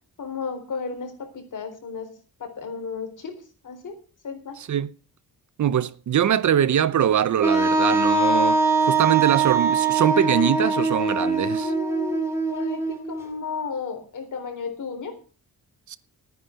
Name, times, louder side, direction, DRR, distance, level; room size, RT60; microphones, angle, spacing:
voice 1, 0.2-2.1 2.4-3.4 3.6-4.0 4.2-4.6 11.5-15.2, left 5 dB, 60° left, 4.0 m, -33 dB
voice 2, 4.6-4.9 5.6-11.7 15.9-16.0, right 9 dB, 55° right, 0.7 m, -22 dB
Wind instrument woodwind instrument, 7.4-13.2, right 3 dB, 5° right, 2.4 m, -22 dB
14.0 x 9.6 x 5.7 m
wide cardioid pair, 155°, 36 cm